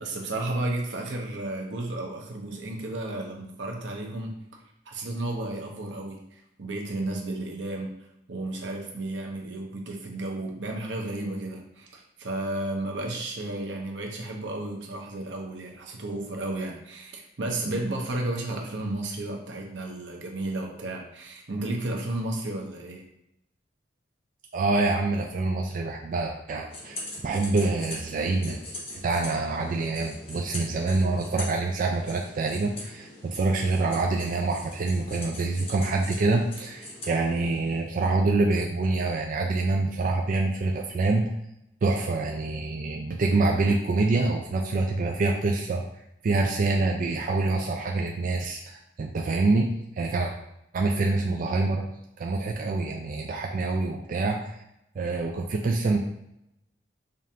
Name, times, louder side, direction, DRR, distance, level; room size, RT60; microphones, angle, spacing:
voice 1, 0.0-4.4 4.9-7.9 8.3-23.0, right 2 dB, 90° right, 1 dB, 0.8 m, -33 dB
voice 2, 24.5-28.6 29.0-41.3 41.8-45.8 46.2-50.3 50.7-51.8 52.2-54.6 55.0-56.0, right 3 dB, 50° right, 2 dB, 0.4 m, -26 dB
sound 1, 26.7-37.9, left 2 dB, 35° left, 1.0 m, -42 dB
5.0 x 2.5 x 2.8 m, 0.81 s
head